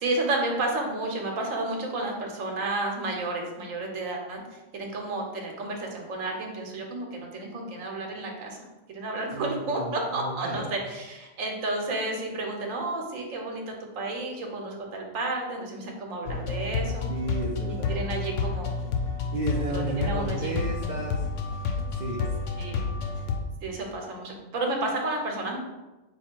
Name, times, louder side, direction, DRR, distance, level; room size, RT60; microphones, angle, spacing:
voice 1, 0.0-8.6 8.9-17.1 17.7-18.7 19.5-20.6 22.6-22.9 23.6-25.6, right 2 dB, 80° right, 1 dB, 1.2 m, -31 dB
voice 2, 9.3-10.7 17.1-18.1 19.3-22.3, right 2 dB, 65° right, 0 dB, 0.4 m, -33 dB
sound 1, 16.3-23.4, left 4 dB, 75° left, 0.9 m, -30 dB
4.6 x 2.4 x 4.4 m, 1.1 s
omnidirectional pair, 1.3 m